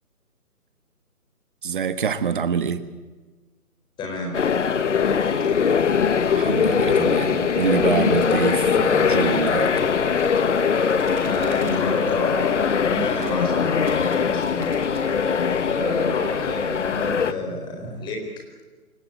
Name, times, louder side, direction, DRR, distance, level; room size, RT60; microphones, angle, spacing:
voice 1, 1.6-2.8 6.3-9.7, right 7 dB, 35° right, 13 dB, 1.4 m, -25 dB
voice 2, 4.0-4.4 5.2-5.5 11.2-14.7 15.6-18.2, left 2 dB, 10° left, 2 dB, 4.3 m, -30 dB
sound 1, 4.3-17.3, left 6 dB, 50° left, 1.3 m, -21 dB
sound 2, 10.2-11.8 13.2-13.4 13.7-15.1, right 6 dB, 5° right, 1.0 m, -44 dB
27.0 x 16.5 x 9.1 m, 1.3 s
figure-of-eight pair, 155°, 45 cm